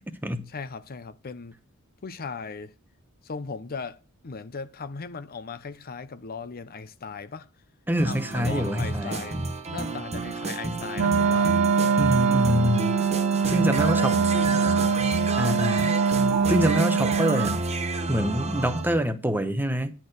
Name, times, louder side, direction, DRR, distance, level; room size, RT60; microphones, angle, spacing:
voice 1, 0.5-1.5 2.0-2.7 3.3-7.5 8.0-9.4 9.7-11.5 13.8-15.0, left 4 dB, 45° left, 0.6 m, -38 dB
voice 2, 7.9-9.2 12.0-13.0 13.5-14.2 15.3-15.9 16.5-17.6 18.1-19.9, equal, 10° right, 0.8 m, -25 dB
sound 1, 8.0-19.1, right 3 dB, 30° right, 1.0 m, -30 dB
Wind instrument woodwind instrument, 10.9-17.6, right 6 dB, 70° right, 0.4 m, -23 dB
10.5 x 4.4 x 6.4 m
head